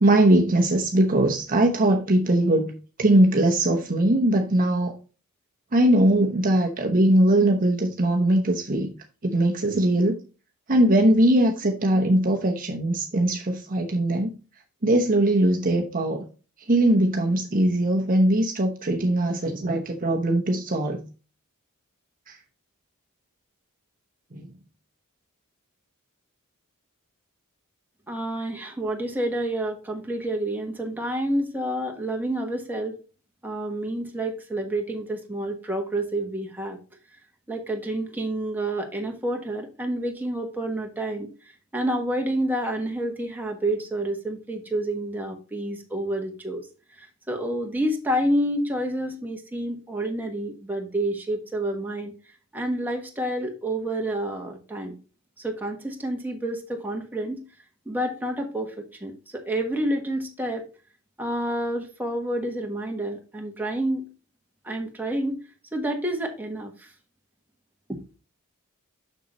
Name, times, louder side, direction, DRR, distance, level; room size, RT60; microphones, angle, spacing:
voice 1, 0.0-4.9 5.7-8.9 9.2-10.1 10.7-14.3 14.8-16.2 16.7-21.0 22.3-22.4 24.3-24.5, right 1 dB, 40° right, 0.9 m, -21 dB
voice 2, 28.1-33.0 33.4-36.8 37.5-41.3 41.7-46.7 47.0-52.1 52.5-54.9 55.4-57.4 57.8-58.7 59.0-60.7 61.2-64.1 64.6-65.4 65.7-66.9 67.9-68.0, right 1 dB, 10° right, 1.3 m, -29 dB
6.7 x 6.5 x 3.1 m
head